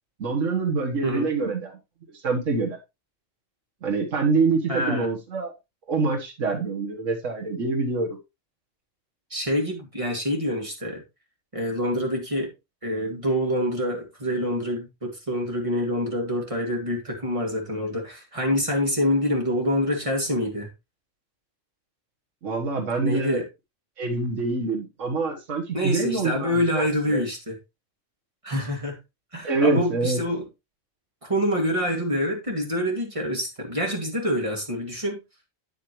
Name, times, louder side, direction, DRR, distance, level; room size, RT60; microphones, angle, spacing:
voice 1, 0.2-1.8 2.1-2.8 3.8-5.5 5.9-8.2 22.4-23.4 24.0-27.2 29.4-30.2, right 3 dB, 85° right, 1 dB, 1.8 m, -25 dB
voice 2, 4.7-5.1 9.3-11.0 11.5-12.5 12.8-20.7 23.0-23.5 25.7-27.6 28.4-29.0 29.3-30.4 31.2-35.2, equal, 25° right, 1 dB, 2.4 m, -26 dB
8.5 x 8.1 x 3.1 m, 0.24 s
omnidirectional pair, 1.3 m